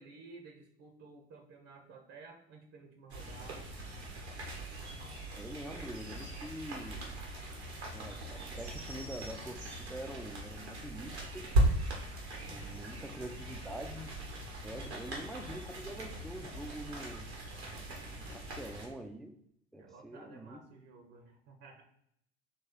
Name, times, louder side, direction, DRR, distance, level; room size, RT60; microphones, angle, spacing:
voice 1, 0.0-3.7 12.4-12.9 19.8-21.8, right 3 dB, 50° right, 3 dB, 0.7 m, -54 dB
sound 1, 3.1-18.9, right 1 dB, 80° right, 1.0 m, -38 dB
voice 2, 5.4-7.0 7.9-11.6 12.5-14.1 14.6-17.3 18.2-19.3 19.7-20.6, right 1 dB, ahead, 4 dB, 0.3 m, -45 dB
4.4 x 3.0 x 3.6 m, 0.72 s
figure-of-eight pair, 60°, 32 cm